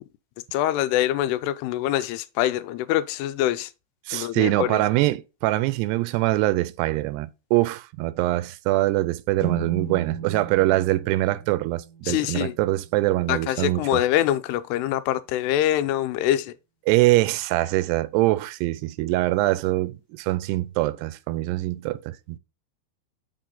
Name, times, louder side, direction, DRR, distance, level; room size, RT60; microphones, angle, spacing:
voice 1, 0.5-3.7 4.1-4.8 12.0-12.6 13.3-16.6, left 13 dB, 85° left, 2.7 m, -24 dB
voice 2, 4.1-13.9 16.9-22.4, right 18 dB, 85° right, 2.6 m, -23 dB
sound 1, 9.4-13.0, right 6 dB, 5° left, 0.8 m, -35 dB
6.6 x 6.3 x 3.8 m
omnidirectional pair, 4.7 m